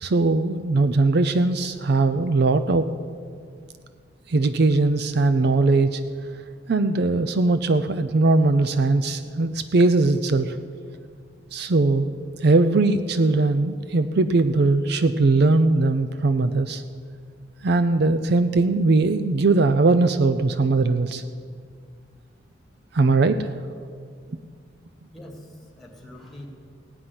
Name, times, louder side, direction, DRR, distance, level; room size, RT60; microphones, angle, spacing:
voice 1, 0.0-2.9 4.3-6.0 6.7-10.6 11.5-12.1 12.4-16.8 17.6-21.2 22.9-23.5, right 3 dB, 60° right, 11 dB, 0.5 m, -20 dB
voice 2, 25.1-26.5, left 1 dB, ahead, 0 dB, 2.2 m, -43 dB
17.0 x 5.9 x 9.6 m, 2.2 s
head